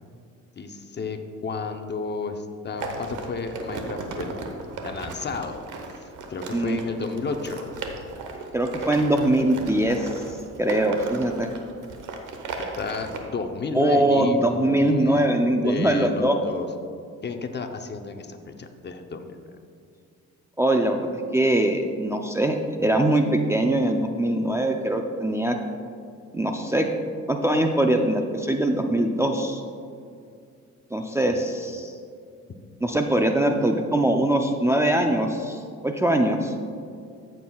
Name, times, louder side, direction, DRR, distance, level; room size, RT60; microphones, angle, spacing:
voice 1, 0.6-4.3 4.8-5.6 6.0-7.8 12.8-15.3 15.6-16.7 17.2-19.4 31.3-31.4, left 4 dB, 35° left, 6 dB, 0.7 m, -32 dB
sound 1, 2.8-13.2, right 3 dB, 85° right, 1.1 m, -36 dB
voice 2, 8.5-10.2 10.6-11.5 13.7-16.4 20.6-25.6 26.3-26.9 27.3-29.6 30.9-31.9 32.8-36.5, right 1 dB, 10° right, 3 dB, 0.5 m, -22 dB
14.0 x 7.5 x 2.3 m, 2.3 s
cardioid pair, 90°, 30 cm